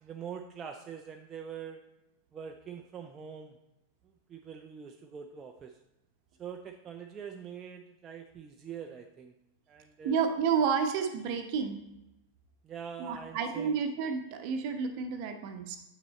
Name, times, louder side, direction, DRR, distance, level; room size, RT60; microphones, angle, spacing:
voice 1, 0.0-1.8 2.3-3.5 4.3-5.7 6.4-9.3 9.7-10.2 12.6-13.8, right 7 dB, 25° right, 3 dB, 0.5 m, -44 dB
voice 2, 10.0-11.8 13.0-15.8, right 6 dB, 45° right, 6 dB, 0.8 m, -30 dB
8.3 x 6.1 x 3.1 m, 0.91 s
figure-of-eight pair, 90°, 0 cm